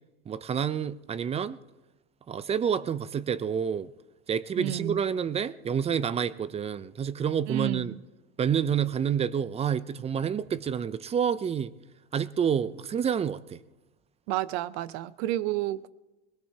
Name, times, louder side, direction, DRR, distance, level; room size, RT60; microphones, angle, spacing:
voice 1, 0.3-1.6 2.3-3.9 4.3-7.9 8.4-11.7 12.1-13.6, right 7 dB, 20° right, 0.4 m, -28 dB
voice 2, 4.6-5.0 7.5-8.0 14.3-15.9, right 15 dB, 70° right, 0.7 m, -30 dB
20.5 x 20.0 x 2.8 m
supercardioid pair, 120°, 33 cm